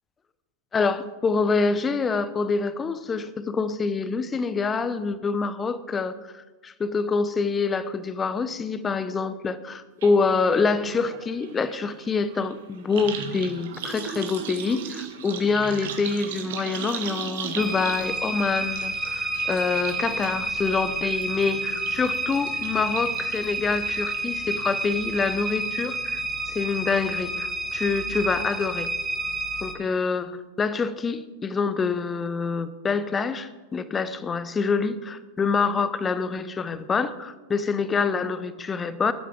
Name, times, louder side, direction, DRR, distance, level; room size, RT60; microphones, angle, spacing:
voice 1, 0.7-28.9 29.6-39.1, left 4 dB, 20° left, 14 dB, 0.9 m, -26 dB
sound 1, 10.0-10.1 10.4-25.0 25.4-25.9 26.2-26.3, right 7 dB, 55° right, 1.8 m, -38 dB
sound 2, 17.6-29.7, right 2 dB, 5° right, 1.4 m, -30 dB
20.5 x 12.0 x 3.7 m, 1.2 s
figure-of-eight pair, 90°, 0 cm